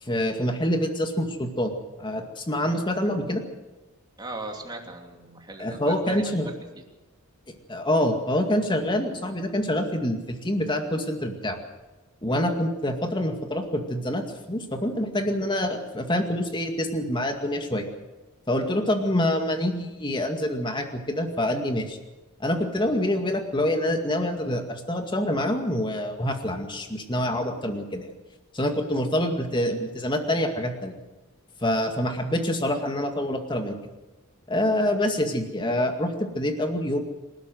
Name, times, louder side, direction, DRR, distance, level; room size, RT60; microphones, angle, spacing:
voice 1, 0.0-1.7 2.0-3.4 5.6-6.5 7.7-11.6 12.2-17.9 18.5-22.0 22.4-28.1 28.5-30.9 31.6-33.8 34.5-37.0, left 1 dB, 20° left, 5 dB, 2.2 m, -26 dB
voice 2, 4.2-6.5, right 2 dB, 20° right, 1 dB, 2.9 m, -38 dB
26.5 x 12.5 x 7.8 m, 1.1 s
head